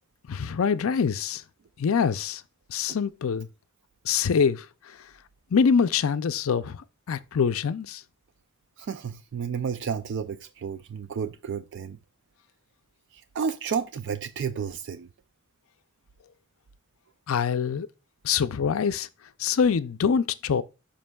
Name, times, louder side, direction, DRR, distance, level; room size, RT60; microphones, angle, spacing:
voice 1, 0.3-1.4 1.8-2.4 2.7-3.5 4.0-5.0 5.5-8.0 17.3-17.9 18.2-19.1 19.4-20.6, left 6 dB, 90° left, 0.5 m, -25 dB
voice 2, 8.8-12.0 13.1-15.1, right 6 dB, 60° right, 0.4 m, -32 dB
12.5 x 5.2 x 2.3 m
head